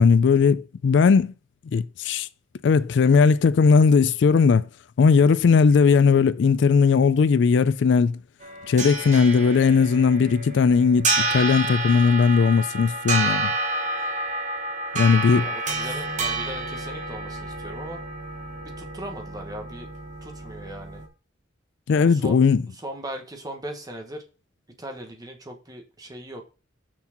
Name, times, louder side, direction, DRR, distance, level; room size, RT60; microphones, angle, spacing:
voice 1, 0.0-1.3 1.7-2.3 2.6-4.7 5.0-8.2 8.7-13.5 14.9-15.5 21.9-22.6, left 5 dB, 65° left, 0.4 m, -18 dB
sound 1, 8.4-21.1, right 2 dB, 40° right, 1.2 m, -29 dB
voice 2, 15.4-18.0 18.6-19.9 20.2-21.0 22.0-22.4 22.7-24.2 24.7-26.4, right 1 dB, 20° right, 1.1 m, -38 dB
6.1 x 4.4 x 5.7 m
head